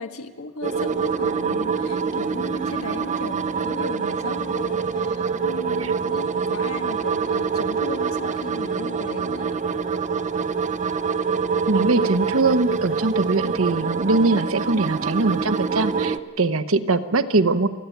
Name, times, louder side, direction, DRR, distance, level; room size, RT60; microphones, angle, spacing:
voice 1, 0.0-9.5, left 3 dB, 90° left, 7 dB, 1.5 m, -36 dB
sound 1, 0.6-16.2, right 5 dB, 35° right, 0.7 m, -25 dB
voice 2, 11.7-17.7, right 3 dB, 70° right, 11 dB, 1.0 m, -22 dB
29.0 x 10.5 x 9.3 m, 1.3 s
head